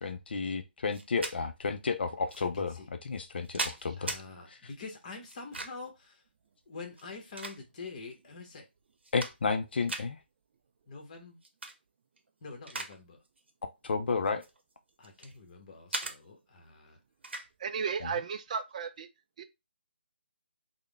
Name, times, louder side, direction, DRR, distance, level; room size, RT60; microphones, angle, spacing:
voice 1, 0.0-4.1 4.5-4.6 9.1-10.2 13.8-14.4 18.0-18.1, left 4 dB, 60° left, 0.4 m, -32 dB
sound 1, 0.9-1.4 2.3-2.4 3.1-4.2 5.3-5.9 6.9-8.0 8.5-8.6 8.9-9.6 9.9-10.1 11.4-11.7 12.2-13.0 13.2-13.5 14.3-15.4 15.9-16.2 17.2-17.5, right 2 dB, 80° right, 0.7 m, -38 dB
voice 2, 2.4-2.9 4.0-6.2 6.7-8.7 10.9-11.4 12.4-13.2 15.0-17.0, left 4 dB, 40° left, 1.0 m, -46 dB
voice 3, 17.6-19.1 19.4-19.5, right 6 dB, 40° right, 0.3 m, -34 dB
3.5 x 2.1 x 3.3 m
figure-of-eight pair, 155°, 6 cm